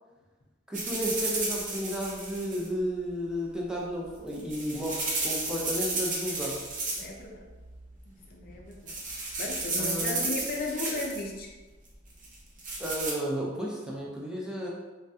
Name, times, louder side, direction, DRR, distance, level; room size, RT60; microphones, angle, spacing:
voice 1, 0.7-6.6 9.8-10.3 12.8-14.7, equal, 5° right, -4 dB, 0.5 m, -33 dB
sound 1, 0.7-2.7 4.2-7.2 7.5-7.9 8.4-8.6 8.9-11.2 12.2-13.1, right 2 dB, 45° right, 0.6 m, -33 dB
voice 2, 6.9-7.4 8.0-8.9 9.4-11.5, left 2 dB, 55° left, 0 dB, 0.5 m, -36 dB
3.2 x 2.3 x 2.7 m, 1.2 s
head